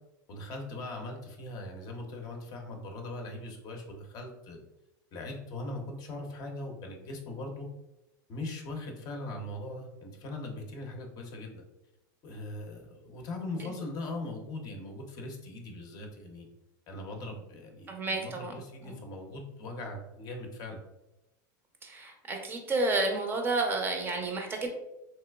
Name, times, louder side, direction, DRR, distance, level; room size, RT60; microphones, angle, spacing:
voice 1, 0.3-4.6 5.1-7.7 8.3-11.6 12.2-16.5 16.9-20.8, left 2 dB, 40° left, 2 dB, 0.6 m, -40 dB
voice 2, 17.9-18.5 18.9-19.0 21.8-24.7, right 2 dB, 20° right, 3 dB, 0.5 m, -30 dB
3.2 x 2.9 x 2.2 m, 0.91 s
supercardioid pair, 135°, 10 cm